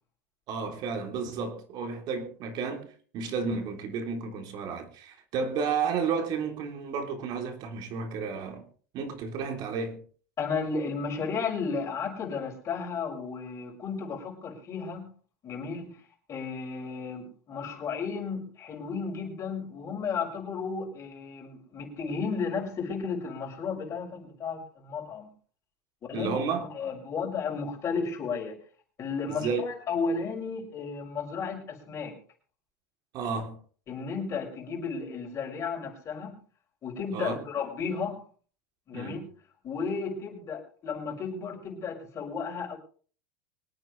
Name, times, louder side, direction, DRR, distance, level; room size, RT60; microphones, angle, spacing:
voice 1, 0.5-2.9 3.1-8.6 8.9-10.0 26.1-26.6 29.3-29.6 33.1-33.6 37.1-37.4 38.9-39.3, right 5 dB, 45° right, 3.5 m, -32 dB
voice 2, 10.4-15.1 15.4-16.0 16.3-25.3 26.1-28.6 29.0-32.2 33.9-36.4 36.8-38.2 38.9-39.2 39.6-42.8, left 5 dB, 30° left, 6.3 m, -33 dB
25.0 x 9.2 x 3.4 m
supercardioid pair, 135°, 10 cm